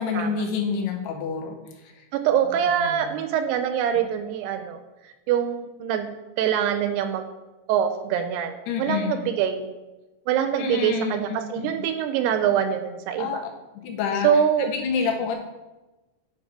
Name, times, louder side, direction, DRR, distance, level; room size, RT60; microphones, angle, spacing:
voice 1, 0.0-1.6 2.8-3.1 8.7-9.2 10.6-11.8 13.2-13.4 13.8-14.3 14.7-15.4, left 6 dB, 80° left, 3 dB, 3.0 m, -27 dB
voice 2, 2.1-4.8 5.3-6.1 6.4-7.3 7.7-9.7 10.3-13.4 14.2-14.7, right 9 dB, 85° right, 8 dB, 2.4 m, -24 dB
9.2 x 3.7 x 4.6 m, 1.1 s
omnidirectional pair, 4.8 m